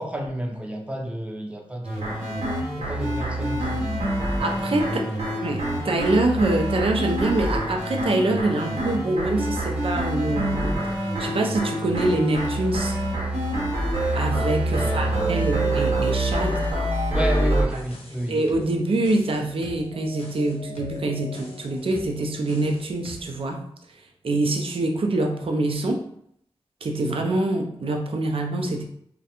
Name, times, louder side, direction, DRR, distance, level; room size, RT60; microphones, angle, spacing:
voice 1, 0.0-2.4 2.7-4.3 4.8-5.2 14.8-15.5 17.1-18.4, right 1 dB, 10° right, 0 dB, 0.5 m, -31 dB
sound 1, 1.8-17.7, right 1 dB, 85° right, 0.8 m, -26 dB
voice 2, 4.4-5.1 5.4-10.8 11.2-13.0 14.1-16.7 18.3-23.6 24.2-26.1 26.8-28.8, right 2 dB, 65° right, 2 dB, 0.4 m, -25 dB
sound 2, 17.7-23.4, left 1 dB, 75° left, 0.6 m, -43 dB
2.3 x 2.1 x 2.8 m, 0.70 s
cardioid pair, 60°, 10 cm